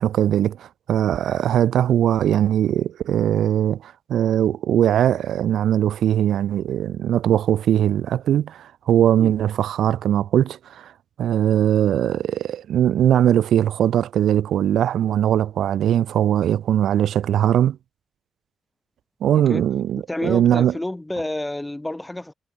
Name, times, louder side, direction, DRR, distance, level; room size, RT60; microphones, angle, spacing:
voice 1, 0.0-10.9 11.2-17.8 19.2-20.7, right 10 dB, 80° right, 0.5 m, -20 dB
voice 2, 19.4-19.7 20.0-22.3, left 1 dB, 10° left, 2.6 m, -29 dB
cardioid pair, 90°, 0 cm